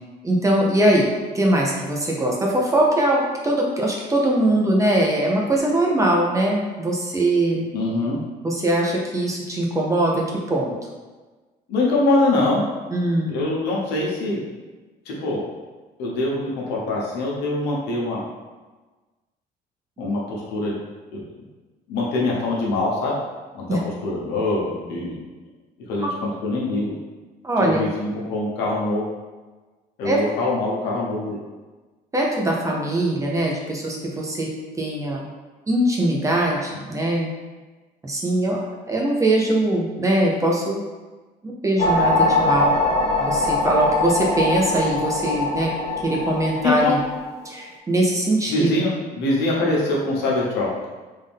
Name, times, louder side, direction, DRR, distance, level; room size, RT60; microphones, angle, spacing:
voice 1, 0.2-1.1 1.3-7.7 8.4-10.7 12.9-13.3 23.7-23.8 26.0-26.1 27.4-27.9 30.0-30.2 32.1-34.5 34.8-35.2 35.7-37.3 38.0-38.6 38.9-40.8 41.4-42.7 43.2-45.7 46.0-47.0 47.4-48.7, right 1 dB, 20° right, -2 dB, 0.7 m, -21 dB
voice 2, 7.7-8.2 11.7-12.6 13.3-14.4 15.0-15.4 16.0-18.2 20.0-20.8 21.1-21.2 21.9-23.2 23.5-25.2 25.9-26.9 27.6-29.0 30.0-31.4 46.6-46.9 48.5-50.9, left 2 dB, 90° left, -4 dB, 1.1 m, -23 dB
sound 1, 41.8-47.5, left 2 dB, 40° left, 0.8 m, -22 dB
3.7 x 2.6 x 3.6 m, 1.3 s
cardioid pair, 110°, 17 cm